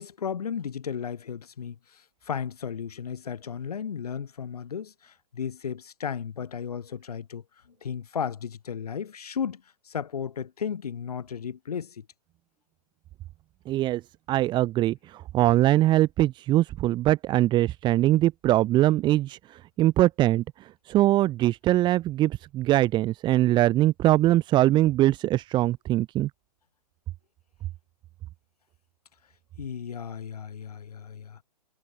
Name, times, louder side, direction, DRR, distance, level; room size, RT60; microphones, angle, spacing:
voice 1, 0.0-7.4 7.8-12.0 29.6-31.4, left 7 dB, 65° left, 5.3 m, -34 dB
voice 2, 13.6-14.0 14.3-26.3, right 15 dB, 20° right, 1.7 m, -22 dB
figure-of-eight pair, 125°, 21 cm